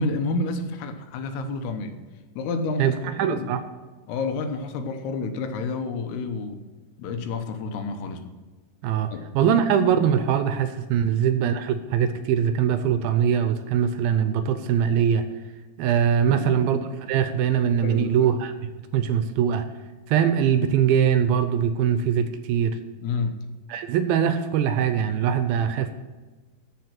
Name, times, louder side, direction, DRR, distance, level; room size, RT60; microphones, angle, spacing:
voice 1, 0.0-2.0 2.4-3.0 3.3-3.5 4.1-6.6 7.0-8.3 9.1-9.5 11.0-11.2 16.3-16.6 17.8-18.3 23.0-23.4, left 3 dB, 85° left, 7 dB, 3.0 m, -29 dB
voice 2, 2.8-3.6 8.8-15.2 15.8-16.8 17.1-18.5 18.9-19.7 20.1-22.8 23.7-25.9, right 8 dB, 80° right, 9 dB, 2.4 m, -22 dB
13.5 x 5.2 x 5.8 m, 1.3 s
omnidirectional pair, 4.6 m